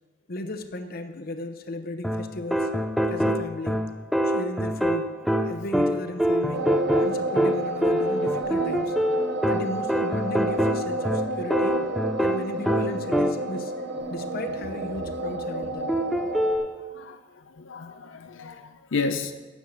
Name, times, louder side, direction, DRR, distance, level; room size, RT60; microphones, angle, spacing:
voice 1, 0.3-2.7 3.1-3.8 4.2-5.1 5.4-6.7 7.0-8.9 9.5-11.8 12.2-13.7 14.1-15.9, left 1 dB, 50° left, 8 dB, 0.8 m, -35 dB
sound 1, 2.0-13.7 15.9-16.7, equal, ahead, 0.5 m, -25 dB
sound 2, 6.5-16.6, right 2 dB, 60° right, 1.1 m, -31 dB
voice 2, 16.4-19.3, left 4 dB, 85° left, 8 dB, 0.7 m, -33 dB
10.5 x 7.1 x 7.2 m, 1.3 s
head